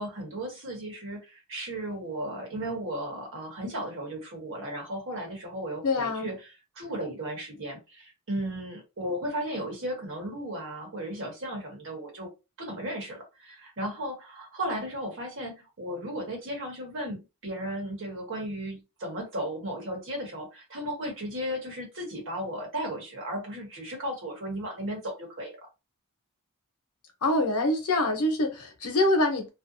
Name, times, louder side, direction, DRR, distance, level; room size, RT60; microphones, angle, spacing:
voice 1, 0.0-6.3 6.8-12.3 12.6-25.7, right 1 dB, 60° right, 1.2 m, -35 dB
voice 2, 5.8-6.3 27.2-29.5, left 2 dB, 75° left, 0.8 m, -25 dB
2.6 x 2.1 x 2.6 m
head